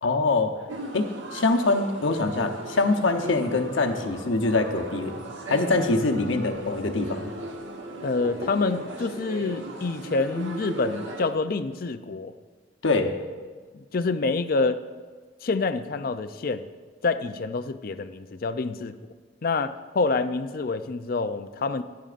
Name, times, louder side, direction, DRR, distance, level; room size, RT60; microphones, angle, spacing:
voice 1, 0.0-0.5 0.9-5.2 5.5-7.3 12.8-13.1, left 3 dB, 90° left, 4 dB, 0.9 m, -24 dB
sound 1, 0.7-11.3, right 1 dB, 75° right, 1.2 m, -37 dB
voice 2, 8.0-12.3 13.7-14.8 15.4-16.6 17.0-19.0 19.4-21.8, left 3 dB, 50° left, 10 dB, 0.4 m, -27 dB
16.0 x 10.5 x 2.5 m, 1.5 s
head